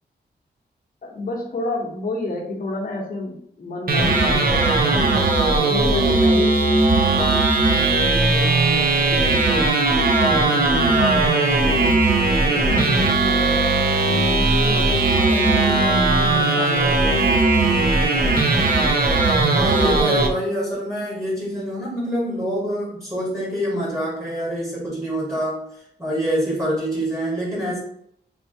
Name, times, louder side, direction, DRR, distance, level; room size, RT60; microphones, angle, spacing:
voice 1, 1.0-5.0 5.5-9.9 10.3-12.0 12.5-18.2, left 2 dB, 50° left, -2 dB, 0.9 m, -31 dB
sound 1, 3.9-20.3, right 2 dB, 55° right, 0.6 m, -18 dB
voice 2, 19.4-25.6 26.0-27.8, equal, 15° right, -7 dB, 1.4 m, -25 dB
3.4 x 2.7 x 2.7 m, 0.70 s
wide cardioid pair, 130°, 18 cm